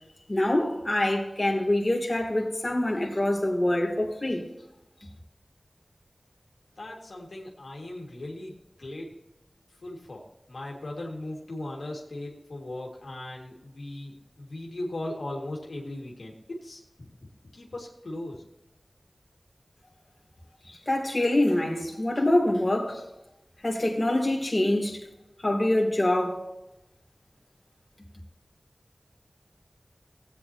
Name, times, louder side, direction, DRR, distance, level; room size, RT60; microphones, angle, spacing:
voice 1, 0.3-4.4 20.7-23.0 23.6-25.0 25.4-26.4, left 1 dB, 35° left, 2.7 m, -25 dB
voice 2, 6.8-9.2 9.8-18.4, left 1 dB, 85° left, 2.0 m, -38 dB
16.5 x 8.8 x 2.9 m
wide cardioid pair, 60°, 0 cm